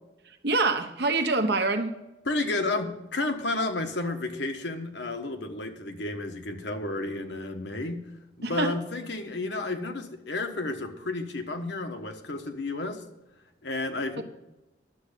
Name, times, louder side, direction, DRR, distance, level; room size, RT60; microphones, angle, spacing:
voice 1, 0.4-1.9 8.4-8.7 14.2-14.3, right 3 dB, 60° right, 6 dB, 1.1 m, -25 dB
voice 2, 2.2-8.0 8.4-13.0 13.6-14.2, left 2 dB, 70° left, 5 dB, 1.3 m, -31 dB
11.5 x 7.5 x 6.8 m, 0.97 s
head